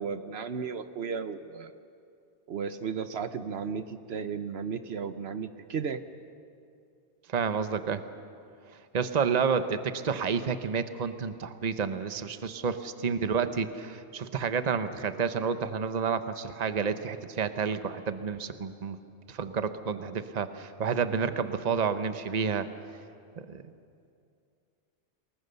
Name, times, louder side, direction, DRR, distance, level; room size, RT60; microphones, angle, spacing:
voice 1, 0.0-1.7 2.5-6.0, right 6 dB, 70° right, 11 dB, 1.0 m, -34 dB
voice 2, 7.3-8.0 8.7-19.0 19.3-22.7 23.5-23.6, right 6 dB, 40° right, 10 dB, 1.0 m, -30 dB
29.0 x 20.0 x 6.8 m, 2.5 s
omnidirectional pair, 1.1 m